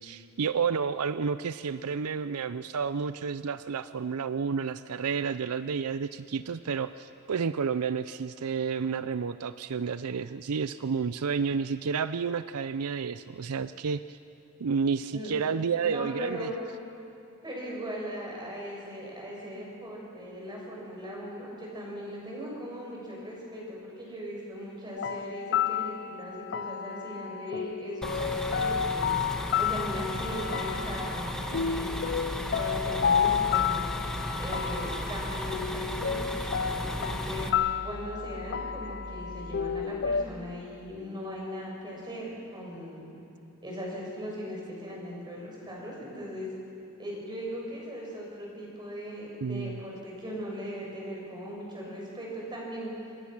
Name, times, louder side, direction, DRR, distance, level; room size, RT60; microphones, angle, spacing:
voice 1, 0.0-14.2 14.6-16.5 49.4-49.8, right 6 dB, 80° right, 13 dB, 0.5 m, -30 dB
voice 2, 15.1-15.5 15.8-16.5 17.4-32.1 32.5-33.8 34.4-37.5 37.8-43.1 43.6-46.5 47.0-52.9, equal, 20° right, -3 dB, 6.7 m, -39 dB
sound 1, 25.0-40.2, left 7 dB, 50° left, 0.5 m, -31 dB
sound 2, 28.0-37.5, equal, 5° left, 1.5 m, -35 dB
sound 3, 30.8-39.9, left 1 dB, 40° right, 4.1 m, -44 dB
27.0 x 21.5 x 6.1 m, 2.7 s
head